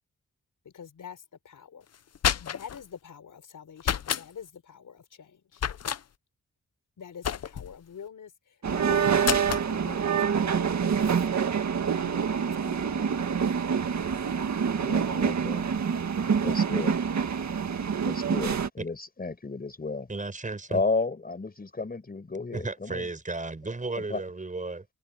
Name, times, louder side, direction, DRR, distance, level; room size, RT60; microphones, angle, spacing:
voice 1, 0.6-1.9 2.4-5.6 7.0-11.0 12.0-13.5, left 7 dB, 85° left, 5.0 m, -46 dB
sound 1, 1.9-2.8 3.8-4.3 5.6-6.0 7.2-7.8 9.2-9.7, left 9 dB, 55° left, 0.7 m, -29 dB
sound 2, 8.6-18.7, right 6 dB, 65° right, 1.8 m, -26 dB
voice 2, 14.8-15.7 16.4-17.0 18.0-20.1 20.7-23.1 24.1-24.2, left 3 dB, 30° left, 5.3 m, -32 dB
voice 3, 20.1-20.8 22.5-24.9, right 3 dB, 25° right, 5.7 m, -34 dB
wide cardioid pair, 145°, 30 cm